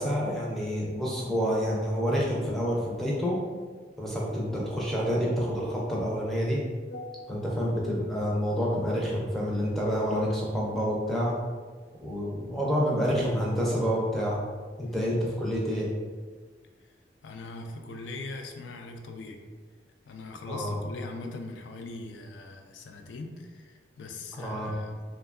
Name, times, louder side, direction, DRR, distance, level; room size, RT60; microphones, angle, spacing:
voice 1, 0.0-3.4 4.0-6.6 7.3-11.3 12.0-14.4 14.8-15.9 20.5-20.8 24.4-24.7, equal, ahead, -5 dB, 0.4 m, -28 dB
voice 2, 6.9-7.4 15.0-15.2 17.2-19.4 20.1-25.0, left 3 dB, 80° left, 4 dB, 0.3 m, -41 dB
2.8 x 2.2 x 2.3 m, 1.5 s
head